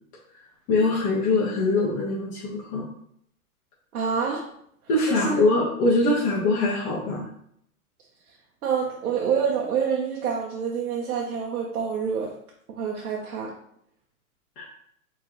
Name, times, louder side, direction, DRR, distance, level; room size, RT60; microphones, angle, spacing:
voice 1, 0.7-2.8 4.9-7.2 14.6-14.7, left 2 dB, 35° left, -6 dB, 1.2 m, -23 dB
voice 2, 3.9-4.4 5.1-5.4 8.6-12.3 12.7-13.5, right 6 dB, 75° right, -2 dB, 1.0 m, -27 dB
4.7 x 3.3 x 3.0 m, 0.68 s
hypercardioid pair, 125°, 44 cm